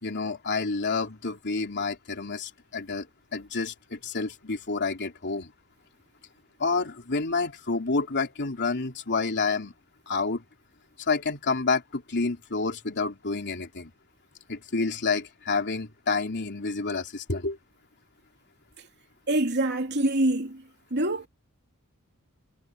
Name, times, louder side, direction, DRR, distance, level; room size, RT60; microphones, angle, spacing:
voice 1, 0.0-3.1 3.3-5.5 6.6-9.7 10.1-10.4 11.0-13.9 14.5-17.6, left 4 dB, 50° left, 3.3 m, -29 dB
voice 2, 19.3-20.6 20.9-21.3, right 1 dB, 50° right, 3.1 m, -25 dB
head